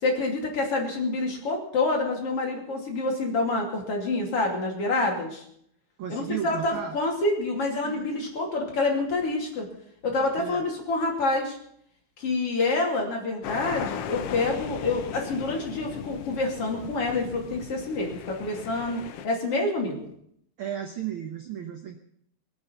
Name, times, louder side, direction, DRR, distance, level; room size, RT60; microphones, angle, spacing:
voice 1, 0.0-5.4 6.1-9.7 10.0-11.6 12.2-20.1, left 2 dB, 50° left, 0 dB, 3.5 m, -27 dB
voice 2, 6.0-7.0 7.8-8.3 10.1-10.7 20.6-22.0, right 10 dB, 65° right, 5 dB, 1.3 m, -35 dB
sound 1, 13.4-19.3, left 9 dB, 70° left, 1.5 m, -37 dB
22.0 x 8.5 x 5.9 m, 0.71 s
omnidirectional pair, 3.5 m